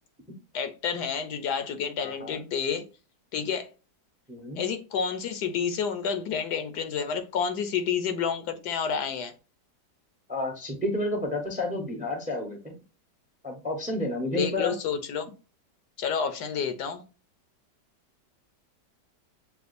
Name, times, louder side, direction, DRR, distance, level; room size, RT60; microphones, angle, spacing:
voice 1, 0.5-2.8 3.3-3.7 4.5-9.3 14.3-15.3 16.0-17.0, left 7 dB, 70° left, 1.2 m, -29 dB
voice 2, 2.0-2.4 4.3-4.6 10.3-12.7 13.4-14.7, left 1 dB, 10° right, 0.5 m, -30 dB
6.8 x 2.4 x 2.5 m
omnidirectional pair, 1.9 m